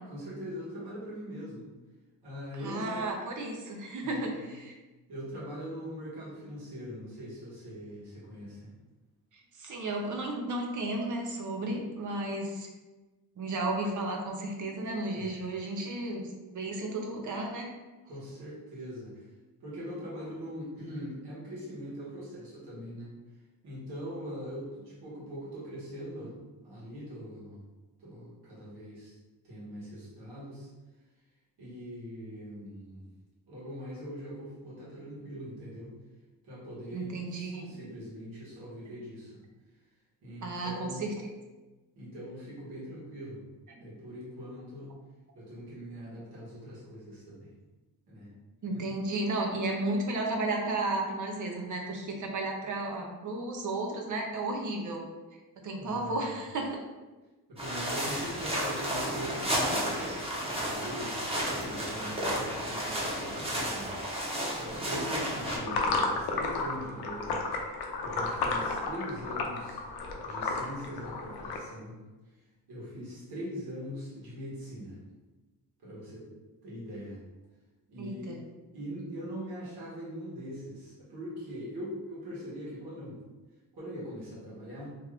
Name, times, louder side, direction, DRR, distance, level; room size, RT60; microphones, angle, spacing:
voice 1, 0.0-1.7 2.2-3.1 4.0-4.4 5.1-8.7 15.1-15.3 18.0-19.3 19.6-23.1 23.6-26.3 26.6-27.6 28.0-29.2 29.4-30.7 31.6-33.1 33.5-36.0 36.4-39.4 40.2-41.1 41.9-43.4 43.8-45.0 45.3-47.5 48.1-48.3 48.7-48.8 55.7-56.4 57.5-67.7 68.0-69.8 70.2-72.0 72.7-75.0 75.8-76.3 76.6-77.2 77.9-78.4 78.7-83.2 83.7-84.9, equal, 85° right, -7 dB, 1.5 m, -42 dB
voice 2, 2.6-4.7 9.6-12.7 13.4-17.7 36.9-37.8 40.4-41.1 48.6-55.0 55.6-56.7 58.1-58.2 78.0-78.4, right 2 dB, 50° right, 1 dB, 0.6 m, -33 dB
sound 1, 57.6-65.6, equal, 15° right, 0.8 m, -32 dB
sound 2, 65.4-71.6, left 3 dB, 85° left, 0.6 m, -33 dB
3.0 x 2.4 x 3.3 m, 1.2 s
cardioid pair, 110°, 38 cm